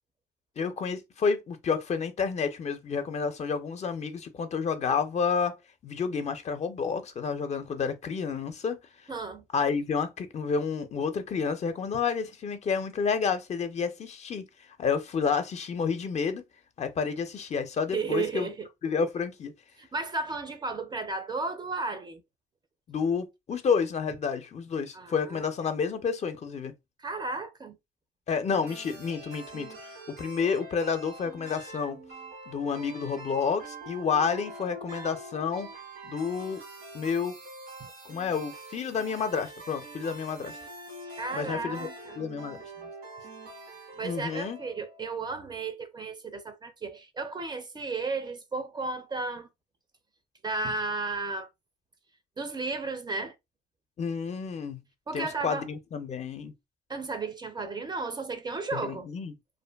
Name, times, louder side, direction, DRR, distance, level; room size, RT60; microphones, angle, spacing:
voice 1, 0.6-5.6 5.8-8.8 9.5-14.5 14.8-16.4 16.8-18.5 18.8-19.5 22.9-26.7 28.3-32.0 32.5-35.7 36.0-36.6 36.9-37.4 38.1-40.5 41.3-41.9 42.2-42.6 44.0-44.6 54.0-54.8 55.1-56.5 58.7-59.3, left 6 dB, 40° left, 0.5 m, -30 dB
voice 2, 9.1-9.4 17.9-18.7 19.8-22.2 24.9-25.4 27.0-27.8 37.8-37.9 41.2-42.2 44.0-49.5 50.4-51.5 52.4-53.3 55.1-55.7 56.9-59.1, right 3 dB, 25° right, 0.4 m, -34 dB
sound 1, 28.5-45.1, right 2 dB, 85° right, 1.2 m, -44 dB
2.5 x 2.5 x 2.2 m
cardioid pair, 95°, 17 cm